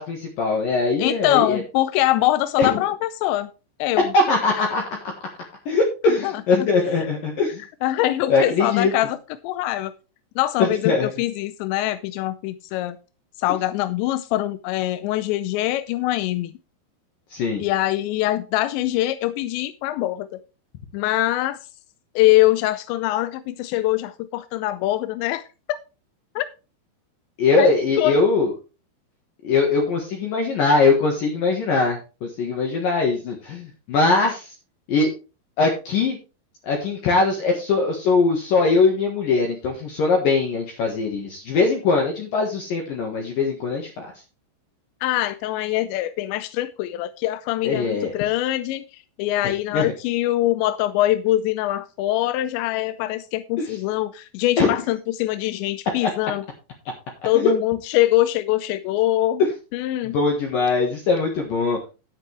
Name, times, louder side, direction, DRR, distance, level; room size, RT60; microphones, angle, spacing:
voice 1, 0.0-1.6 2.6-2.7 4.0-4.8 5.7-7.6 8.3-8.9 10.6-11.1 17.3-17.6 27.4-28.5 29.4-34.5 34.9-35.1 35.6-36.2 36.6-44.1 47.6-48.1 49.7-49.9 53.6-53.7 54.6-54.7 56.0-56.1 57.3-57.5 60.0-61.9, left 4 dB, 60° left, 1 dB, 2.6 m, -21 dB
voice 2, 1.0-3.5 3.8-4.1 6.1-6.3 7.8-9.2 9.4-9.9 10.4-13.0 13.4-16.5 17.6-20.3 20.9-21.6 22.2-25.4 26.4-26.5 27.6-27.7 28.0-28.1 45.0-56.4 57.2-59.4 59.7-60.2, left 15 dB, 80° left, 12 dB, 2.7 m, -23 dB
10.5 x 9.0 x 3.4 m, 0.32 s
omnidirectional pair, 5.6 m